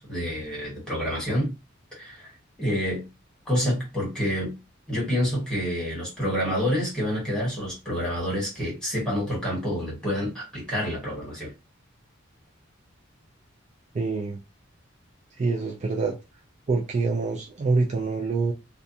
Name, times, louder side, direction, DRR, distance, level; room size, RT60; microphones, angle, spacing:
voice 1, 0.0-1.5 1.9-2.3 2.6-3.0 3.5-4.5 4.9-11.5, equal, 5° left, 1.5 m, -28 dB
voice 2, 13.9-14.4 15.3-16.1 16.7-18.5, right 3 dB, 35° right, 0.3 m, -26 dB
2.5 x 2.2 x 2.7 m
head